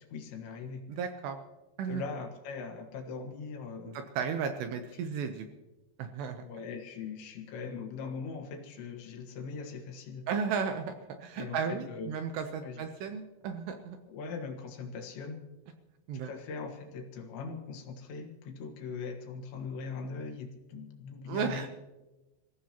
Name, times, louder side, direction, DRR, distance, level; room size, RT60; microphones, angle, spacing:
voice 1, 0.0-0.8 1.9-4.0 4.9-5.0 6.4-10.5 11.4-12.2 12.6-12.9 14.1-15.4 16.2-21.7, left 5 dB, 70° left, 4 dB, 3.8 m, -41 dB
voice 2, 0.9-1.4 1.8-2.0 3.8-5.5 6.0-6.4 10.3-10.9 11.2-14.0 16.1-16.3 21.3-21.7, right 6 dB, 75° right, 7 dB, 2.7 m, -34 dB
27.0 x 15.5 x 2.9 m, 1.1 s
omnidirectional pair, 5.6 m